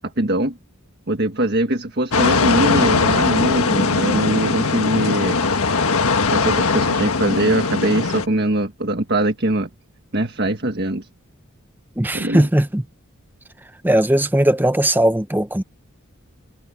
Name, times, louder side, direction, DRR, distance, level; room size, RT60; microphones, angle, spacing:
voice 1, 0.2-0.6 1.1-5.4 6.3-9.7 10.1-11.1 12.1-12.5, right 1 dB, 50° right, 1.6 m, -22 dB
sound 1, 2.1-8.3, left 4 dB, 90° left, 1.5 m, -19 dB
voice 2, 12.0-12.8 13.8-15.6, right 1 dB, 10° right, 0.7 m, -18 dB
head